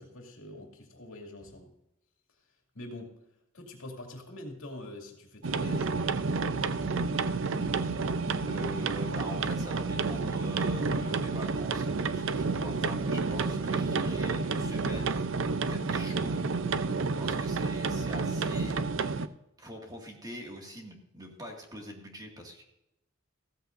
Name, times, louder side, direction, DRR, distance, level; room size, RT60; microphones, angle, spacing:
voice 1, 0.0-1.7 2.7-3.2 3.5-5.9, left 1 dB, 70° left, 1 dB, 2.6 m, -44 dB
sound 1, 5.4-19.3, right 4 dB, 65° right, 0.6 m, -30 dB
voice 2, 8.5-15.3 15.7-16.5 17.2-18.7 19.6-22.6, equal, 20° right, 1 dB, 2.1 m, -43 dB
15.5 x 14.0 x 2.6 m, 0.85 s
head